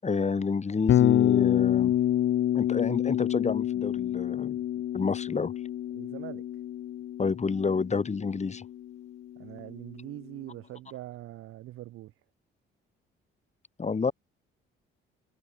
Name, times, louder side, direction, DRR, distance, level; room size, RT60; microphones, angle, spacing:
voice 1, 0.0-1.9 2.5-4.6 4.9-5.5 7.2-8.6 13.8-14.1, left 5 dB, 30° left, 7.2 m, -29 dB
Bass guitar, 0.9-9.0, left 11 dB, 65° left, 1.8 m, -27 dB
voice 2, 5.9-6.4 9.4-12.1, right 15 dB, 85° right, 6.9 m, -42 dB
cardioid pair, 95°, 21 cm